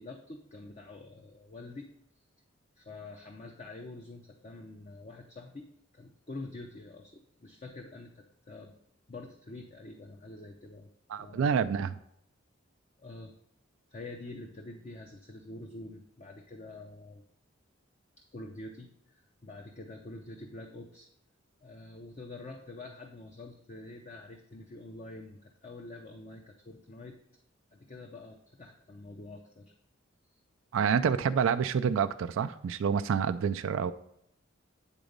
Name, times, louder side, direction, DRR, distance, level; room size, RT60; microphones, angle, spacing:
voice 1, 0.0-1.9 2.8-8.8 9.1-10.9 11.2-11.7 13.0-13.3 13.9-17.2 18.2-21.1 21.6-27.2 27.7-29.7, left 2 dB, 40° left, 2 dB, 0.6 m, -46 dB
voice 2, 11.1-12.0 30.7-33.9, right 7 dB, 80° right, 10 dB, 0.3 m, -28 dB
8.9 x 4.0 x 5.1 m, 0.75 s
head